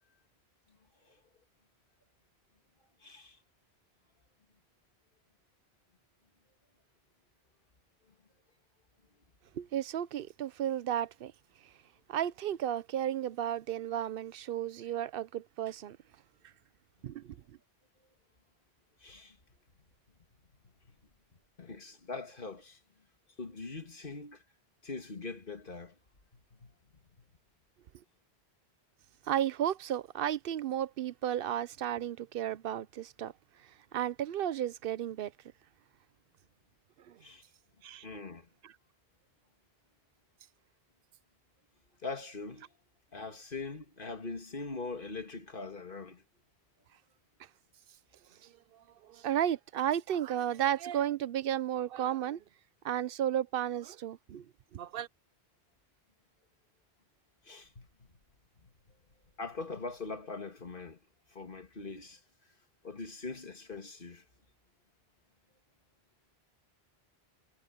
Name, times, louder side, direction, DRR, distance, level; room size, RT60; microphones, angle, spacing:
voice 1, 3.0-3.4 19.0-19.4 20.9-21.0 21.6-22.8 23.4-24.4 24.8-25.9 26.6-27.0 37.2-37.4 38.0-38.5 42.0-42.7 43.1-46.2 57.4-58.1 58.6-58.7 59.4-61.0 61.3-62.2 62.8-64.2, left 3 dB, 55° left, 2.4 m, -42 dB
voice 2, 9.5-11.3 12.1-16.0 17.0-17.6 29.2-33.3 33.6-35.3 37.0-37.2 37.8-38.0 38.6-38.7 48.4-52.4 52.8-55.1, right 11 dB, 65° right, 0.8 m, -33 dB
omnidirectional pair, 1.1 m